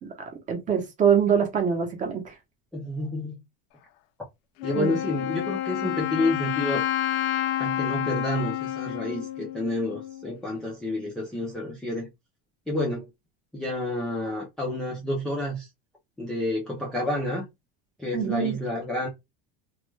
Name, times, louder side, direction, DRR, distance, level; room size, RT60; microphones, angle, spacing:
voice 1, 0.0-2.3 4.7-5.0 18.1-18.5, right 7 dB, 25° right, 0.8 m, -24 dB
voice 2, 2.7-3.4 4.6-6.8 7.6-12.1 12.7-13.1 13.5-15.7 16.2-17.5 18.0-19.1, left 1 dB, ahead, 0.4 m, -29 dB
Wind instrument woodwind instrument, 4.6-10.3, left 12 dB, 75° left, 0.5 m, -29 dB
2.3 x 2.2 x 3.1 m
cardioid pair, 160°, 30 cm